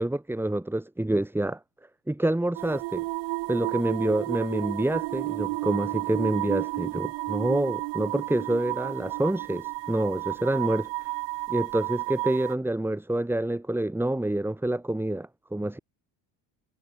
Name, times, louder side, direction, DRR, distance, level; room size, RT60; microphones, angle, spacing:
voice 1, 0.0-1.6 2.1-3.0 3.5-11.1 11.5-15.8, right 1 dB, 5° right, 4.4 m, -27 dB
sound 1, 2.6-12.5, right 25 dB, 85° right, 6.1 m, -32 dB
cardioid pair, 135°, 43 cm